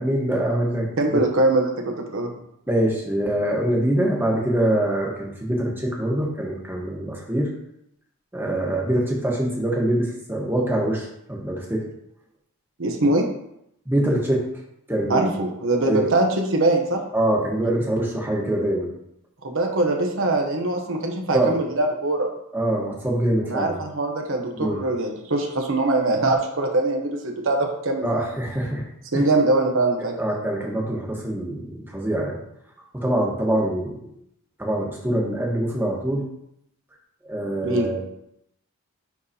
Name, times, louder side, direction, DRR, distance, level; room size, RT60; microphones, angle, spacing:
voice 1, 0.0-0.9 2.7-7.5 8.3-11.9 13.9-14.4 14.9-15.3 15.9-16.1 17.1-18.9 21.3-21.6 22.5-23.8 24.5-24.8 28.0-28.8 29.1-29.3 30.2-32.4 32.9-34.2 34.6-36.2 37.3-38.0, right 1 dB, 10° right, -2 dB, 1.2 m, -24 dB
voice 2, 1.0-2.3 12.8-13.2 15.1-17.0 19.4-22.3 23.4-28.2 29.1-30.1 37.6-37.9, right 2 dB, 60° right, 3 dB, 0.9 m, -22 dB
10.5 x 4.0 x 2.8 m, 0.77 s
head